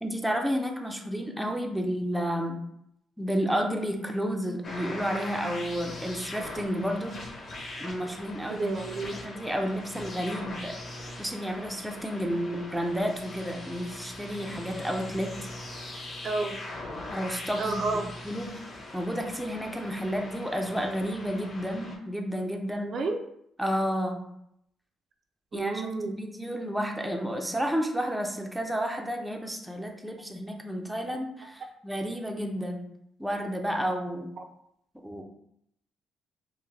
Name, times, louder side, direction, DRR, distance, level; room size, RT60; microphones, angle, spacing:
voice 1, 0.0-2.6 3.2-7.2 7.8-8.7 9.1-10.7 11.2-15.3 17.1-17.8 18.2-18.6 18.9-22.9 23.6-24.3 25.5-32.8 33.2-34.3 35.0-35.2, equal, 5° right, 2 dB, 0.5 m, -31 dB
sound 1, 4.6-22.0, left 1 dB, 40° left, 1.3 m, -41 dB
voice 2, 8.5-9.2 16.2-16.6 17.6-18.1 22.9-23.2 25.5-26.1, right 3 dB, 50° right, 4 dB, 0.5 m, -30 dB
5.6 x 2.1 x 3.3 m, 0.75 s
cardioid pair, 120°, 0 cm